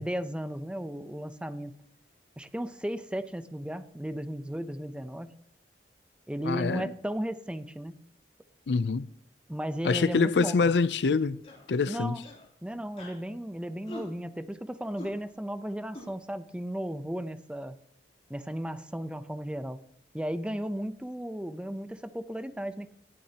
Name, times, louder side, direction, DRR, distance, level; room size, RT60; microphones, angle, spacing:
voice 1, 0.0-1.7 2.4-5.3 6.3-8.0 9.5-10.7 11.9-12.3 12.6-17.8 18.3-19.8 20.1-22.9, equal, 5° right, 0.6 m, -35 dB
voice 2, 6.4-6.9 8.7-9.1 9.8-11.4 11.7-12.2, left 4 dB, 70° left, 0.5 m, -25 dB
sound 1, 11.4-11.7 12.2-12.5 13.0-13.2 13.9-14.1 15.0-15.1 15.9-16.1, left 1 dB, 35° left, 3.1 m, -43 dB
17.5 x 12.0 x 2.9 m
head